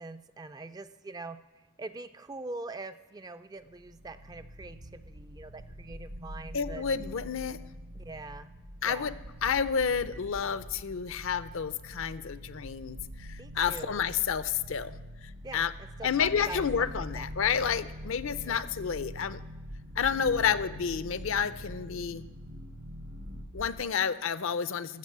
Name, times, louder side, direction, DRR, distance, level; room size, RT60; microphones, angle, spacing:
voice 1, 0.0-1.4 1.8-6.8 7.9-8.5 8.8-9.2 13.4-14.0 15.4-17.3 18.5-18.7 20.5-20.6, right 3 dB, 20° right, 11 dB, 0.3 m, -43 dB
sound 1, 3.6-23.4, equal, 55° right, 0.9 m, -47 dB
sound 2, 4.4-23.8, equal, 85° right, 1.0 m, -47 dB
voice 2, 6.5-7.6 8.8-9.1 9.4-15.0 15.2-15.7 16.0-19.4 20.0-22.2 23.5-25.0, left 7 dB, 70° left, 13 dB, 0.5 m, -30 dB
13.5 x 7.0 x 7.3 m, 1.2 s
head